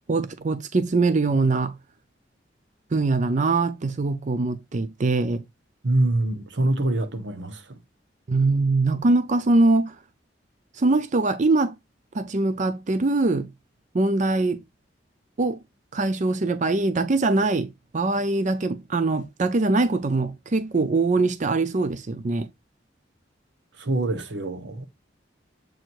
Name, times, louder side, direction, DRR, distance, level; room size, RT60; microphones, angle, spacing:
voice 1, 0.1-1.8 2.9-5.4 8.3-10.0 10.7-11.7 12.1-13.5 13.9-14.6 15.4-15.6 15.9-22.5, right 3 dB, 45° right, 0.5 m, -22 dB
voice 2, 5.8-7.8 23.8-24.9, right 2 dB, 90° right, 1.2 m, -25 dB
7.7 x 2.6 x 4.5 m
head